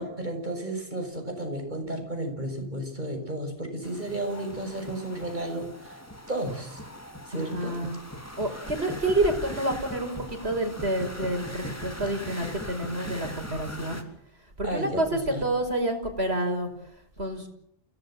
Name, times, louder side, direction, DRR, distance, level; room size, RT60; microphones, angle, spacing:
voice 1, 0.0-6.0 6.3-6.8 7.3-7.8 12.0-12.1 14.6-15.4, right 1 dB, 45° right, 4 dB, 6.8 m, -33 dB
sound 1, 3.8-14.0, equal, 15° left, 3.2 m, -40 dB
voice 2, 7.3-8.0 8.4-14.0 14.6-16.7 17.2-17.5, right 1 dB, 75° right, 4 dB, 5.9 m, -28 dB
29.0 x 17.5 x 7.8 m, 0.73 s
omnidirectional pair, 1.1 m